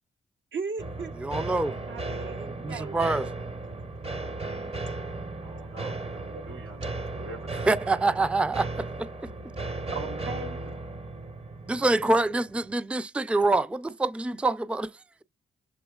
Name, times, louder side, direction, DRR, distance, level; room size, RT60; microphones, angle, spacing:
voice 1, 0.5-1.1 1.8-3.2 9.9-10.6, right 4 dB, 65° right, 1.0 m, -37 dB
sound 1, 0.8-12.7, right 2 dB, 30° right, 0.8 m, -36 dB
voice 2, 1.2-1.7 2.6-3.3 7.7-9.1 11.7-14.9, right 2 dB, 5° right, 0.4 m, -25 dB
voice 3, 5.4-7.8, right 2 dB, 90° right, 1.3 m, -45 dB
7.0 x 2.9 x 2.3 m
cardioid pair, 60°, 21 cm